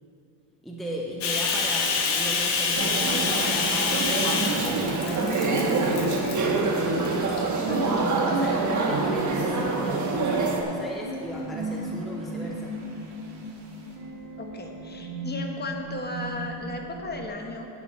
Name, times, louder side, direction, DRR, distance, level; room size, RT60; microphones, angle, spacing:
voice 1, 0.6-12.7, right 1 dB, ahead, -2 dB, 0.7 m, -36 dB
sound 1, 1.0-17.3, right 1 dB, 65° right, 2.3 m, -40 dB
Bathtub (filling or washing), 1.2-6.6 7.0-7.4 8.0-8.8, left 4 dB, 70° left, 1.4 m, -27 dB
sound 2, 2.7-10.6, right 3 dB, 40° right, 1.3 m, -26 dB
voice 2, 14.4-17.7, left 2 dB, 25° left, 2 dB, 1.1 m, -35 dB
8.8 x 7.1 x 6.4 m, 2.8 s
cardioid pair, 120°, 43 cm